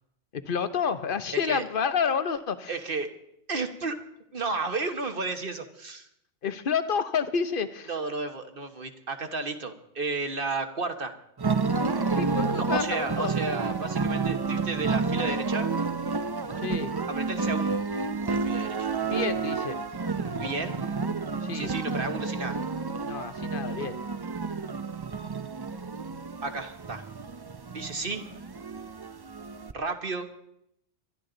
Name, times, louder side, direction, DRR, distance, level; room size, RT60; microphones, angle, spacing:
voice 1, 0.3-2.7 6.4-7.9 12.1-13.3 16.6-16.9 19.0-19.8 21.4-21.7 23.0-24.0, left 6 dB, 50° left, 11 dB, 1.1 m, -29 dB
voice 2, 1.3-1.6 2.7-3.1 3.5-4.0 4.3-6.1 7.9-11.1 12.5-15.7 17.1-17.8 18.3-18.9 20.3-20.8 21.5-22.6 26.4-27.0 27.7-28.3 29.7-30.3, right 3 dB, 50° right, 6 dB, 1.4 m, -32 dB
sound 1, 11.4-29.7, right 4 dB, 30° right, 0.4 m, -30 dB
22.5 x 13.0 x 3.9 m, 0.75 s
omnidirectional pair, 1.2 m